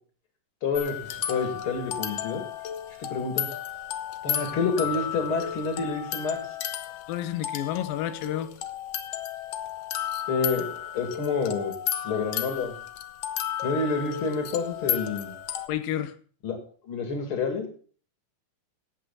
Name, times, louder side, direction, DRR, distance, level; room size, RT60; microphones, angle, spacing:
voice 1, 0.6-1.0 1.3-2.4 3.0-3.5 4.2-6.4 10.3-10.7 10.9-11.7 12.0-12.7 13.6-15.3 16.4-16.6 16.9-17.7, left 4 dB, 40° left, 5 dB, 2.9 m, -28 dB
sound 1, 0.7-15.7, left 10 dB, 70° left, 1.5 m, -33 dB
voice 2, 7.1-8.5 15.7-16.2, left 12 dB, 85° left, 13 dB, 2.6 m, -30 dB
16.0 x 8.3 x 4.1 m, 0.42 s
omnidirectional pair, 3.9 m